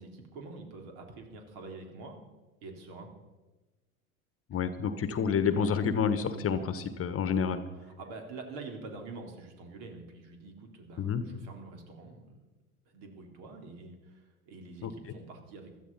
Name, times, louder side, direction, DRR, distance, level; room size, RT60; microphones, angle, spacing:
voice 1, 0.0-2.2 2.6-3.1 4.5-4.6 8.0-12.4 12.9-15.8, right 3 dB, 55° right, 3 dB, 3.9 m, -46 dB
voice 2, 4.5-7.6 11.0-11.2 14.8-14.9, left 6 dB, 30° left, 12 dB, 1.3 m, -29 dB
16.0 x 13.0 x 5.7 m, 1.1 s
hypercardioid pair, 90°, 44 cm